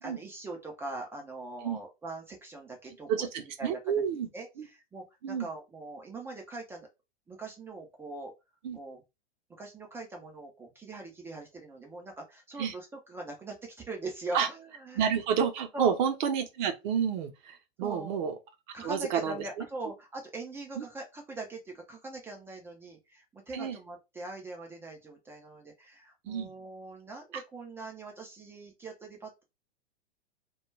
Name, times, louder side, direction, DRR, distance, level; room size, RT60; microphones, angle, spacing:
voice 1, 0.0-3.1 3.6-3.8 4.3-6.9 7.3-8.3 8.7-9.0 9.5-15.0 15.7-15.9 17.8-18.2 18.7-29.4, right 2 dB, 10° right, 0.4 m, -42 dB
voice 2, 3.1-4.3 4.6-4.7 5.2-5.5 8.6-8.8 12.6-12.7 14.3-14.5 14.9-18.4 18.8-19.6 20.8-20.9 23.5-23.8 26.3-26.5 27.3-27.4, right 7 dB, 45° right, 0.6 m, -30 dB
2.2 x 2.2 x 3.1 m
figure-of-eight pair, 105°, 32 cm